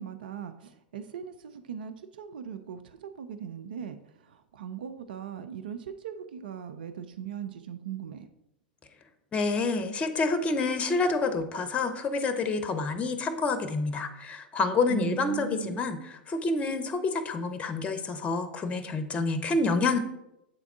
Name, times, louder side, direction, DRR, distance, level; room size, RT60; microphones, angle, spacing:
voice 1, 0.0-4.0 4.2-8.3 14.9-15.8, right 9 dB, 70° right, 9 dB, 0.4 m, -39 dB
voice 2, 9.3-20.0, left 3 dB, 25° left, 9 dB, 0.7 m, -28 dB
7.9 x 3.5 x 3.5 m, 0.87 s
figure-of-eight pair, 95°, 5 cm